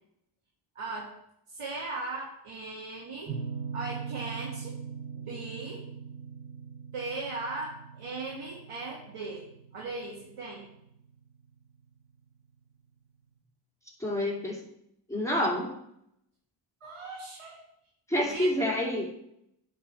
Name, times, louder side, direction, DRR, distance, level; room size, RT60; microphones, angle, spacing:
voice 1, 0.7-1.1 1.5-3.4 3.7-4.8 5.1-5.9 6.9-9.5 9.7-10.7 16.8-17.6 18.2-18.5, right 3 dB, 90° right, -3 dB, 1.5 m, -38 dB
sound 1, 3.3-12.0, right 6 dB, 65° right, 1.6 m, -41 dB
voice 2, 14.0-14.6 15.1-15.7 18.1-19.1, left 1 dB, 5° left, -2 dB, 2.5 m, -28 dB
10.0 x 4.5 x 4.2 m, 0.77 s
cardioid pair, 55°, 50 cm